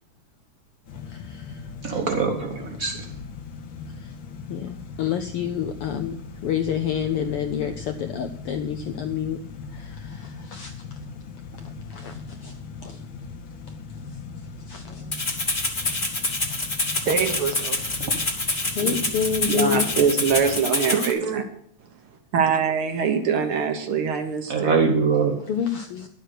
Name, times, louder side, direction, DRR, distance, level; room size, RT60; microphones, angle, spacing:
sound 1, 0.9-20.6, left 5 dB, 55° left, 1.6 m, -39 dB
voice 1, 1.1-1.6 4.0-4.1 4.5-9.4 9.7-10.7 11.9-12.5 12.8-13.0 14.7-15.1 17.0-17.1 17.7-17.9 18.7-19.8 25.5-26.1, left 8 dB, 80° left, 7 dB, 1.2 m, -29 dB
voice 2, 1.8-3.1 24.5-25.4, right 5 dB, 90° right, 4 dB, 0.7 m, -23 dB
Rattle (instrument), 15.1-21.1, left 2 dB, 25° left, 1.3 m, -26 dB
voice 3, 17.0-18.1 18.8-19.0 19.4-21.4 22.3-24.8, right 6 dB, 60° right, 7 dB, 1.6 m, -23 dB
11.5 x 7.8 x 6.6 m, 0.67 s
omnidirectional pair, 3.3 m